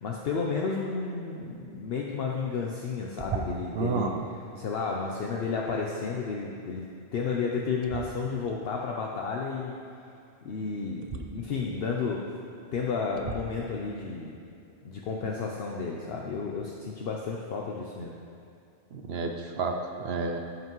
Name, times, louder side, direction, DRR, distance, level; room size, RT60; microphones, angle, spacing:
voice 1, 0.0-4.1 4.6-9.7 10.4-12.2 12.7-14.4 14.8-18.1, left 5 dB, 65° left, -1 dB, 0.8 m, -32 dB
sound 1, 3.2-3.8 7.8-8.5 11.0-11.2 12.2-12.3 13.2-13.6, right 5 dB, 45° right, 0.5 m, -36 dB
voice 2, 3.7-4.2 18.9-20.4, right 4 dB, 70° right, 3 dB, 0.8 m, -30 dB
14.0 x 5.6 x 3.1 m, 2.6 s
omnidirectional pair, 1.1 m